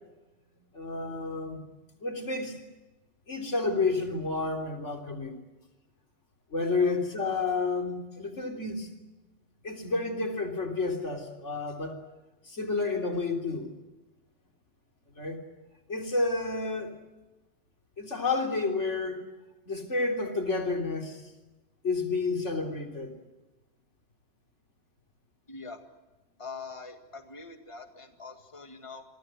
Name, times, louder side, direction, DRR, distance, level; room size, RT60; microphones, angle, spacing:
voice 1, 0.7-1.6 2.0-2.6 3.3-5.4 6.5-8.9 9.6-12.0 12.5-13.7 15.2-15.4 15.9-16.9 18.0-19.2 19.7-21.2 21.8-23.2, left 3 dB, 90° left, 3 dB, 3.9 m, -30 dB
voice 2, 25.5-25.8 26.4-29.0, left 4 dB, 25° left, 6 dB, 2.0 m, -43 dB
28.5 x 23.5 x 7.8 m, 1.1 s
omnidirectional pair, 1.2 m